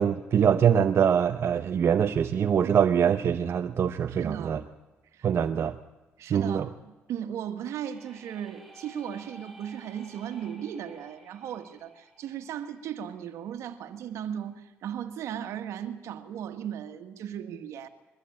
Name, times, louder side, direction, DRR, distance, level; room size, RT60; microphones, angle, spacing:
voice 1, 0.0-4.6 5.2-5.8 6.3-6.7, right 8 dB, 55° right, 8 dB, 0.8 m, -24 dB
voice 2, 4.1-4.6 5.1-5.3 6.2-17.9, right 9 dB, 80° right, 9 dB, 1.7 m, -36 dB
sound 1, 7.7-13.5, right 1 dB, ahead, 3.8 m, -53 dB
22.5 x 14.0 x 8.7 m, 1.1 s
supercardioid pair, 65°, 5 cm